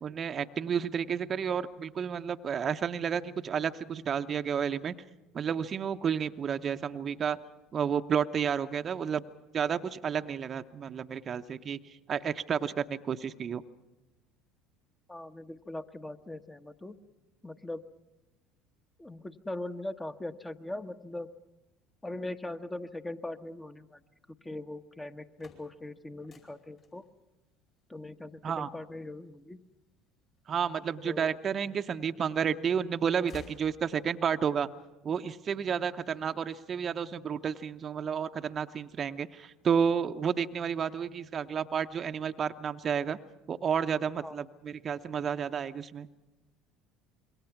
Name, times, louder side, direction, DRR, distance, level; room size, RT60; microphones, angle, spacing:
voice 1, 0.0-4.9 5.3-7.4 7.7-9.2 9.5-11.8 12.1-13.6 28.4-28.7 30.5-34.7 35.0-43.2 43.5-46.1, right 7 dB, 40° right, 9 dB, 0.8 m, -31 dB
voice 2, 15.1-17.0 17.4-17.8 19.0-21.3 22.0-24.0 24.4-27.0 27.9-29.6 31.0-31.3 44.2-44.4, left 1 dB, 15° left, 8 dB, 1.1 m, -40 dB
sound 1, 25.1-31.0 31.6-32.4 32.7-34.3, left 5 dB, 45° left, 5.2 m, -56 dB
26.0 x 22.0 x 5.9 m, 1.1 s
hypercardioid pair, 70°, 0 cm